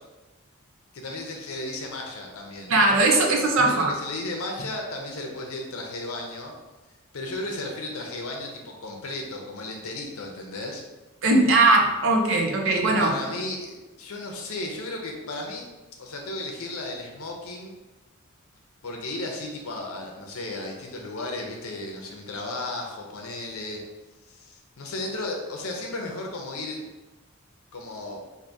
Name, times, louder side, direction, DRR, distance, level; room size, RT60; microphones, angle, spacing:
voice 1, 0.9-2.7 3.6-6.5 7.1-10.8 13.0-15.6 16.0-17.8 18.8-23.8 24.3-26.9 27.7-28.2, left 2 dB, 75° left, 1 dB, 0.6 m, -34 dB
voice 2, 2.7-3.9 11.2-13.1, right 2 dB, 60° right, 1 dB, 0.6 m, -20 dB
4.9 x 2.6 x 2.6 m, 1.1 s
head